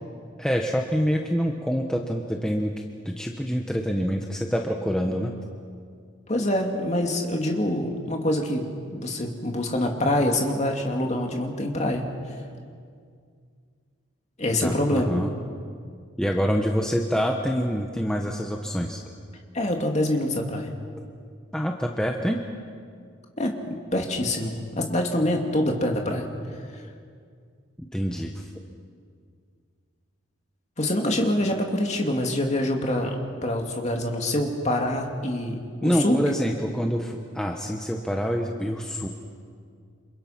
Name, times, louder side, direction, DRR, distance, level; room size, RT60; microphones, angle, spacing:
voice 1, 0.4-2.7 3.0-5.3 14.5-15.3 16.2-19.0 21.5-22.4 27.9-28.5 35.8-39.1, equal, 5° left, 1 dB, 1.0 m, -26 dB
voice 2, 6.3-12.0 14.4-15.1 19.5-20.7 23.4-26.3 30.8-36.2, left 1 dB, 35° left, 2 dB, 2.6 m, -25 dB
29.0 x 27.0 x 5.9 m, 2.2 s
head